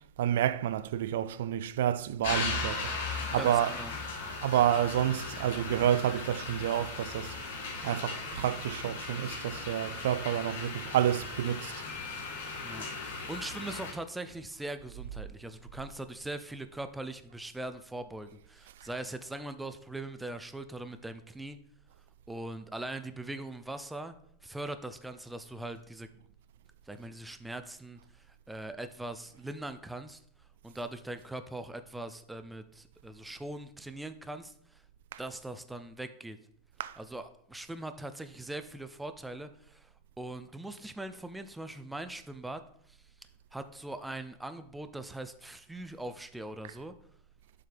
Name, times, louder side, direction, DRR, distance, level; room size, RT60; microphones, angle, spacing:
voice 1, 0.2-3.7 4.4-7.3 7.8-11.7 35.1-35.2 36.8-37.0, right 11 dB, 75° right, 0.4 m, -29 dB
sound 1, 2.2-13.9, left 3 dB, 80° left, 2.0 m, -37 dB
voice 2, 3.3-3.9 12.6-21.6 22.3-24.1 24.4-26.1 26.9-30.2 30.6-34.8 35.2-36.4 37.0-39.9 40.2-42.6 42.9-43.0 43.5-46.9, right 2 dB, 5° right, 0.3 m, -41 dB
sound 2, 11.9-14.0, left 10 dB, 30° left, 2.2 m, -51 dB
7.3 x 5.6 x 3.4 m
supercardioid pair, 170°, 0 cm